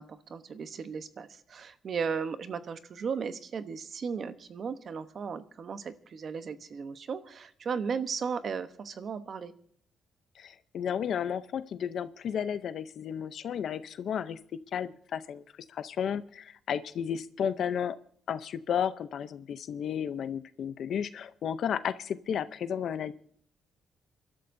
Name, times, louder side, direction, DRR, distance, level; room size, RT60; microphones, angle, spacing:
voice 1, 0.0-9.5, right 6 dB, 45° right, 11 dB, 0.9 m, -36 dB
voice 2, 10.4-14.4 14.7-15.4 15.7-18.0 18.3-23.1, left 8 dB, 60° left, 13 dB, 0.6 m, -33 dB
30.0 x 12.5 x 2.7 m, 0.62 s
cardioid pair, 125°, 0 cm